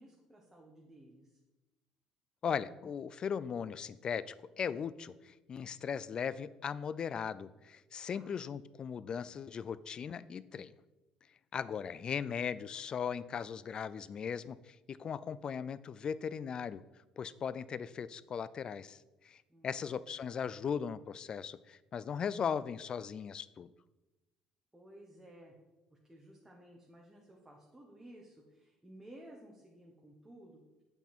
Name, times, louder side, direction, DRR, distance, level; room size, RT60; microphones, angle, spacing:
voice 1, 0.0-1.4 8.1-8.3 19.5-20.0 24.7-25.5 26.0-30.6, right 1 dB, 10° right, -2 dB, 1.4 m, -56 dB
voice 2, 2.4-10.7 11.5-16.8 17.2-19.0 19.2-23.7, left 7 dB, 40° left, 17 dB, 0.3 m, -38 dB
8.3 x 5.5 x 4.4 m, 1.1 s
cardioid pair, 100°, 2 cm